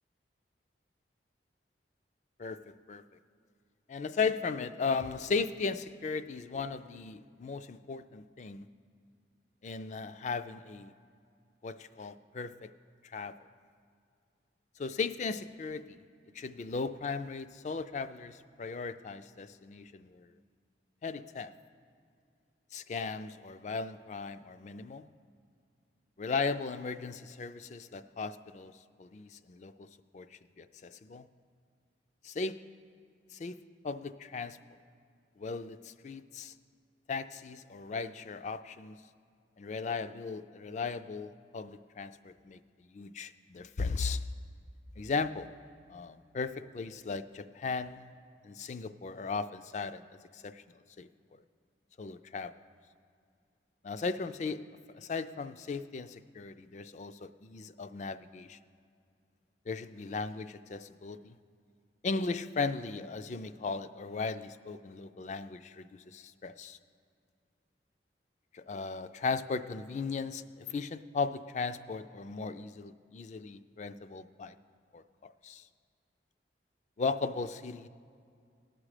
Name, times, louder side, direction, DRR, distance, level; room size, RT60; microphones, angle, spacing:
voice 1, 2.4-3.0 3.9-8.7 9.6-10.9 11.6-12.7 13.0-13.4 14.8-16.0 16.3-20.3 21.0-21.5 22.7-25.1 26.2-29.9 30.1-31.3 32.2-32.6 33.3-34.6 35.4-36.5 37.1-39.0 39.6-42.6 42.9-44.2 45.0-45.5 45.9-48.1 48.4-50.0 50.3-50.6 51.0-51.1 52.0-52.5 53.8-54.6 54.9-58.6 59.7-61.4 62.0-66.8 68.5-74.5 74.9-75.0 75.4-75.7 77.0-77.9, left 4 dB, 40° left, 12 dB, 0.3 m, -37 dB
18.5 x 6.2 x 4.9 m, 2.3 s
head